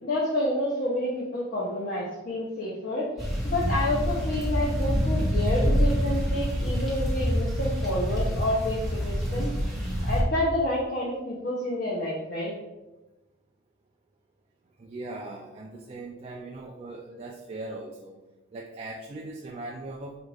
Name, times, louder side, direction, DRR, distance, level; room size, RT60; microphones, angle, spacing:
voice 1, 0.0-3.1 3.4-9.5 10.0-12.5, left 1 dB, 50° left, -5 dB, 0.7 m, -29 dB
sound 1, 3.2-10.2, equal, ahead, 1.1 m, -26 dB
voice 2, 14.8-18.2 18.5-20.2, right 2 dB, 30° right, -1 dB, 0.3 m, -39 dB
5.0 x 2.4 x 3.3 m, 1.0 s
head